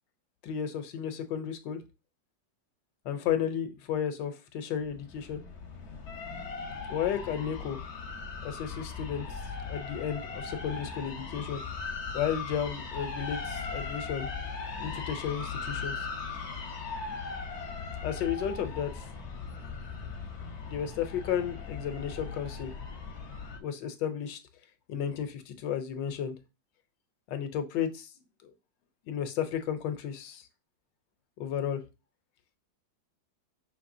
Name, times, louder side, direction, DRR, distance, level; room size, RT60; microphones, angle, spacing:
voice 1, 0.4-1.8 3.0-5.4 6.9-7.8 8.4-9.4 9.7-11.6 12.1-14.3 14.8-15.9 18.0-19.0 20.7-22.7 23.6-24.4 24.9-26.3 27.3-28.1 28.4-28.5 29.1-30.4 31.4-31.8, left 9 dB, 75° left, 1.3 m, -33 dB
sound 1, 4.8-23.6, left 4 dB, 50° left, 0.9 m, -38 dB
5.8 x 3.2 x 2.6 m
omnidirectional pair, 2.0 m